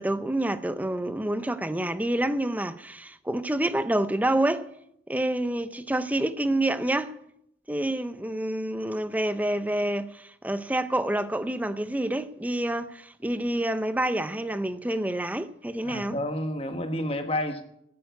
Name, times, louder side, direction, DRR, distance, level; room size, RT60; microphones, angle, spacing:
voice 1, 0.0-4.7 5.1-7.1 7.7-16.2, right 1 dB, 10° right, 0.5 m, -28 dB
voice 2, 15.8-17.6, left 1 dB, 30° left, 1.3 m, -30 dB
11.0 x 9.4 x 9.5 m
head